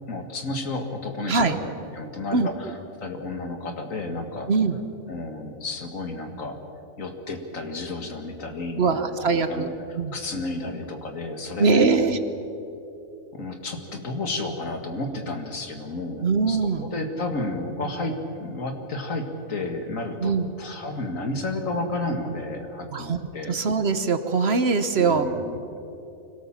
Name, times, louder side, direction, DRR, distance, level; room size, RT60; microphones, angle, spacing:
voice 1, 0.0-4.5 5.1-6.6 7.0-11.9 13.3-23.6 24.9-25.6, left 2 dB, 70° left, 5 dB, 2.2 m, -32 dB
voice 2, 1.3-1.6 2.3-2.5 4.5-4.8 8.8-9.7 10.0-10.1 11.6-12.2 16.2-16.9 20.2-20.6 22.9-23.2 23.5-25.3, right 4 dB, 50° right, 9 dB, 1.2 m, -22 dB
25.0 x 17.5 x 7.3 m, 2.9 s
omnidirectional pair, 1.4 m